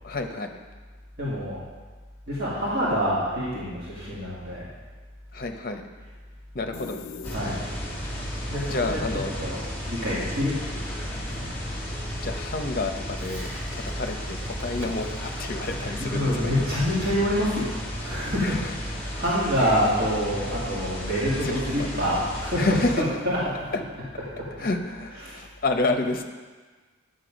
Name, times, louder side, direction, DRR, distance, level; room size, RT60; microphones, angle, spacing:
voice 1, 0.0-0.6 5.3-5.8 6.5-7.0 8.6-9.3 12.2-16.5 18.4-18.6 21.4-21.6 22.6-22.9 23.7-23.8 24.6-26.2, left 2 dB, 45° left, 5 dB, 0.7 m, -29 dB
voice 2, 1.2-1.6 2.3-4.7 6.0-6.1 7.3-7.6 8.5-11.5 15.5-17.7 18.0-18.6 18.9-23.5 24.2-24.5 25.1-25.5, equal, 50° right, -9 dB, 2.2 m, -27 dB
sound 1, 6.7-8.0, left 5 dB, 85° left, 0.4 m, -40 dB
sound 2, 7.2-23.0, equal, 10° left, 1.8 m, -34 dB
Crackle, 13.2-20.0, equal, 80° right, 1.5 m, -47 dB
9.7 x 6.4 x 5.1 m, 1.4 s
head